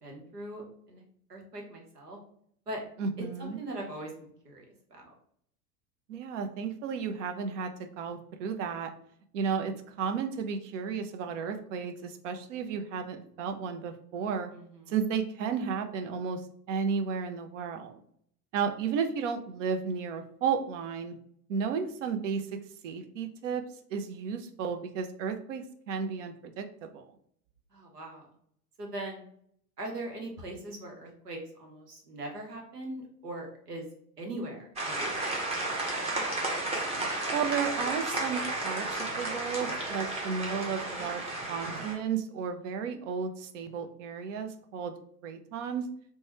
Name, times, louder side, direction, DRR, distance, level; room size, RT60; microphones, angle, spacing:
voice 1, 0.0-1.0 1.3-2.2 2.7-2.8 3.4-5.1 14.5-14.9 27.7-28.3 28.8-29.2 29.8-33.9 34.2-35.6, right 1 dB, 85° right, 1 dB, 0.9 m, -41 dB
voice 2, 3.0-3.6 6.1-8.9 9.3-14.5 14.9-18.0 18.5-21.2 21.5-23.6 23.9-27.1 37.3-44.9 45.2-45.9, right 6 dB, 55° right, 7 dB, 0.5 m, -33 dB
sound 1, 34.8-41.9, right 2 dB, 15° right, 0.7 m, -33 dB
3.0 x 2.2 x 2.9 m, 0.67 s
figure-of-eight pair, 85°, 47 cm